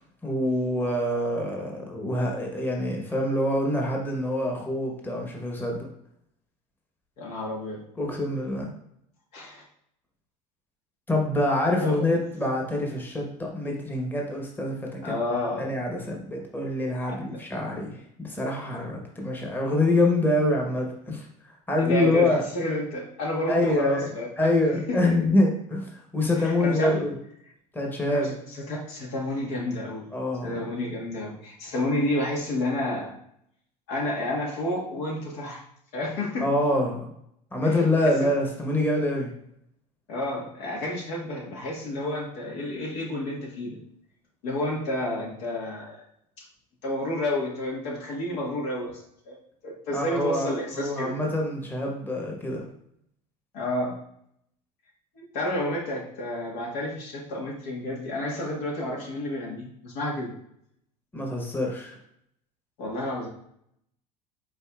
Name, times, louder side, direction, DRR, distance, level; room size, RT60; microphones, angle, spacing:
voice 1, 0.2-5.9 8.0-8.7 11.1-15.1 15.6-21.3 21.7-22.4 23.5-24.1 24.4-27.1 27.7-28.4 30.1-30.6 36.4-37.1 37.5-39.3 49.9-50.5 50.7-52.7 61.1-62.0, left 1 dB, 10° left, 0 dB, 1.0 m, -25 dB
voice 2, 7.2-7.8 9.3-9.6 11.8-12.0 15.0-15.7 17.1-17.4 21.8-24.5 24.9-25.1 26.4-27.1 28.1-30.0 30.4-33.1 33.9-35.6 35.9-36.5 37.6-38.2 40.1-43.8 44.4-46.0 46.4-46.5 46.8-48.9 49.3-49.4 49.6-51.1 53.5-54.0 55.1-60.3 62.8-63.3, left 1 dB, 75° left, -1 dB, 1.5 m, -30 dB
5.2 x 4.1 x 2.4 m, 0.72 s
supercardioid pair, 95°, 19 cm